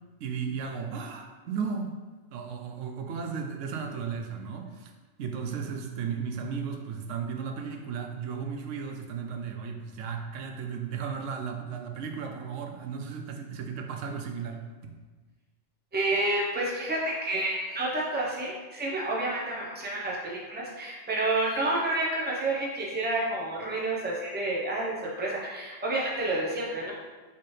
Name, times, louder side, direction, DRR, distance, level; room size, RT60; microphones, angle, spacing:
voice 1, 0.2-2.0 2.3-4.9 5.2-15.0, right 6 dB, 85° right, 4 dB, 0.9 m, -35 dB
voice 2, 15.9-26.9, right 2 dB, 10° right, -3 dB, 0.6 m, -29 dB
4.3 x 3.7 x 3.2 m, 1.3 s
omnidirectional pair, 1.2 m